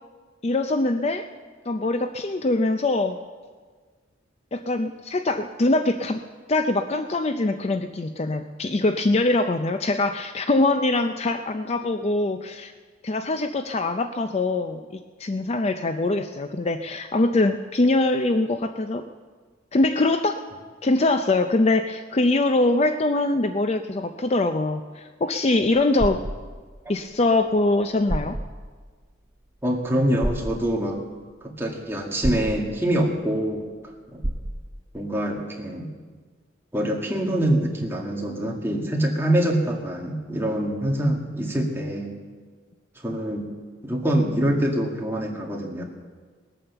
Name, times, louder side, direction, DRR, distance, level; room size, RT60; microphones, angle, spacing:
voice 1, 0.4-1.3 1.7-3.2 4.5-6.2 6.5-12.7 13.0-19.1 19.7-20.4 20.8-26.2 26.9-28.4, left 2 dB, 35° left, 8 dB, 0.5 m, -23 dB
sound 1, 25.8-26.4 27.7-27.8 28.1-28.5 30.2-30.6 32.2-32.6 34.2-34.6, right 1 dB, 35° right, 0.9 m, -27 dB
voice 2, 29.6-31.0 31.4-34.2 34.9-35.9 36.7-42.2 43.0-43.5 43.8-45.8, right 1 dB, 10° right, 0 dB, 1.9 m, -25 dB
19.5 x 8.9 x 6.9 m, 1.5 s
head